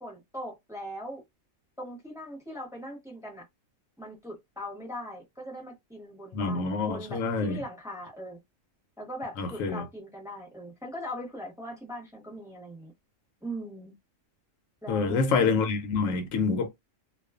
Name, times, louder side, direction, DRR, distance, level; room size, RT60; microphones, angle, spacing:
voice 1, 0.0-1.2 1.8-3.5 4.0-8.4 9.0-12.9 13.4-13.9 14.8-15.5, equal, 5° right, 0.9 m, -40 dB
voice 2, 6.3-7.6 9.4-9.8 14.9-16.7, left 4 dB, 80° left, 1.0 m, -27 dB
2.4 x 2.3 x 2.4 m
omnidirectional pair, 1.4 m